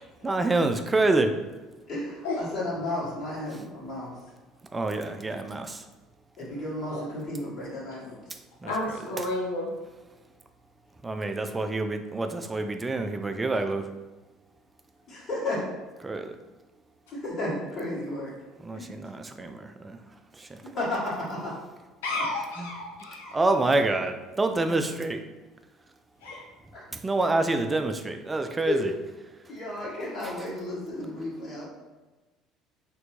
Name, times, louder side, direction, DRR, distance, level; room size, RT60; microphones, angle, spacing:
voice 1, 0.2-1.4 4.7-5.9 8.6-9.3 11.0-13.9 16.0-16.4 18.6-20.0 20.3-20.7 22.6-22.7 23.3-25.2 26.9-28.9 30.2-30.3, right 2 dB, 20° right, 7 dB, 0.3 m, -27 dB
voice 2, 1.9-4.1 6.4-8.2 15.1-15.7 17.1-18.3 18.7-18.9 20.7-21.5 26.7-26.9 28.7-28.8 29.5-31.7, left 1 dB, 50° left, -7 dB, 1.3 m, -32 dB
voice 3, 8.6-9.7 22.0-23.4 26.2-26.4, left 2 dB, 75° left, -4 dB, 0.6 m, -31 dB
3.2 x 2.5 x 3.0 m, 1.2 s
figure-of-eight pair, 60°, 0 cm